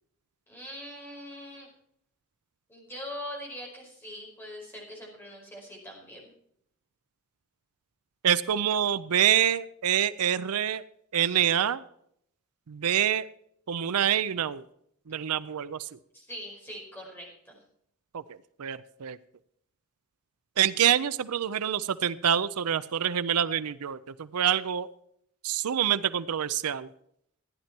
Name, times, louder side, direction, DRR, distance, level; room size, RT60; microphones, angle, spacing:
voice 1, 0.5-1.7 2.7-6.3 16.1-17.6, equal, 10° left, -2 dB, 5.0 m, -42 dB
voice 2, 8.2-10.8 11.1-11.8 12.7-13.3 13.7-14.6 15.1-15.9 18.1-18.2 18.6-19.2 20.6-24.9 25.4-26.9, right 9 dB, 80° right, 15 dB, 0.5 m, -26 dB
14.5 x 10.5 x 4.4 m, 0.72 s
head